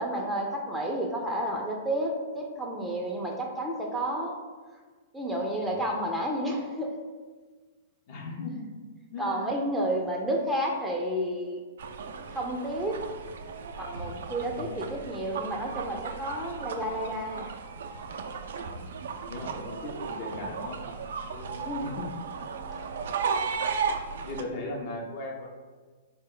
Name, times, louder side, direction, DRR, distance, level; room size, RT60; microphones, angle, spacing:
voice 1, 0.0-4.4 5.1-6.9 9.2-11.6 12.3-13.0 13.8-17.5 21.6-21.9 22.7-22.9 24.1-24.2, right 1 dB, 5° right, -2 dB, 0.4 m, -31 dB
voice 2, 8.1-8.7 9.1-9.5 14.5-14.8 18.7-19.0 19.3-20.8 21.3-22.1 22.7-22.8 24.2-25.5, left 2 dB, 50° left, 0 dB, 0.6 m, -38 dB
sound 1, 11.8-24.4, right 5 dB, 70° right, 0.3 m, -35 dB
3.4 x 2.2 x 3.7 m, 1.4 s
hypercardioid pair, 130°, 0 cm